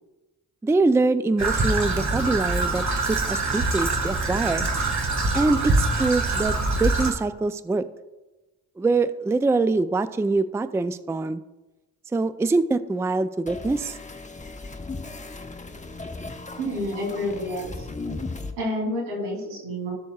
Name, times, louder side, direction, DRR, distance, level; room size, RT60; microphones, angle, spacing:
voice 1, 0.6-4.7 5.3-7.9 8.8-11.4 12.1-14.0, right 3 dB, 5° right, 14 dB, 0.4 m, -24 dB
Traffic noise roadway noise / Trickle dribble, 1.4-7.1, right 3 dB, 45° right, 1.7 m, -24 dB
sound 1, 13.5-18.5, left 3 dB, 20° left, 1.0 m, -36 dB
voice 2, 16.6-17.8 18.6-19.9, left 1 dB, 85° right, -2 dB, 3.2 m, -29 dB
14.0 x 6.9 x 2.4 m, 1.1 s
hypercardioid pair, 45°, 40 cm